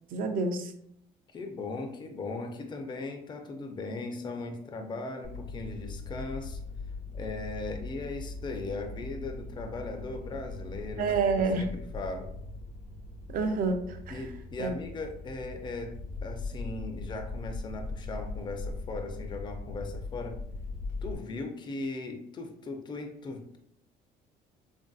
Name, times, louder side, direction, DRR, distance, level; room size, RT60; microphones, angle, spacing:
voice 1, 0.1-0.7 11.0-11.7 13.3-14.2 14.6-14.7, right 4 dB, 55° right, 7 dB, 0.4 m, -28 dB
voice 2, 1.3-6.6 7.1-12.3 14.1-15.9 16.2-20.4 21.0-23.6, left 3 dB, 25° left, 4 dB, 0.4 m, -38 dB
sound 1, 5.2-21.1, left 2 dB, 80° left, 0.8 m, -40 dB
3.1 x 2.6 x 2.3 m, 0.72 s
cardioid pair, 110°, 17 cm